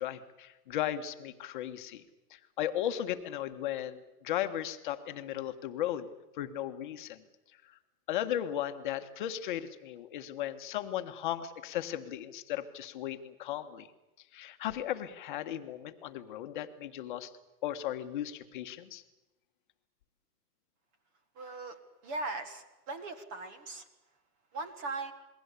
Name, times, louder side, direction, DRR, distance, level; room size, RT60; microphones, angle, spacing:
voice 1, 0.0-2.0 2.3-6.1 6.3-7.2 7.6-7.8 8.1-13.9 14.3-17.3 17.6-19.0, left 11 dB, 30° left, 9 dB, 1.4 m, -36 dB
voice 2, 21.3-23.9 24.5-25.1, right 3 dB, 15° right, 11 dB, 1.3 m, -39 dB
28.0 x 21.0 x 8.4 m, 1.0 s
hypercardioid pair, 170°, 49 cm